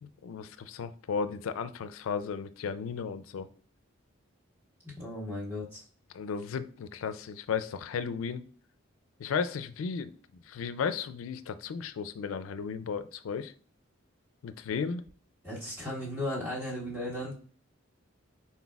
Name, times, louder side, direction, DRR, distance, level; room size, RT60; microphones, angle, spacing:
voice 1, 0.0-3.5 6.1-8.4 9.2-10.1 10.5-13.5 14.4-15.0, left 6 dB, 85° left, 13 dB, 0.4 m, -34 dB
voice 2, 4.8-5.8 15.4-17.4, left 1 dB, 10° right, -7 dB, 1.4 m, -36 dB
4.2 x 4.0 x 2.3 m, 0.42 s
head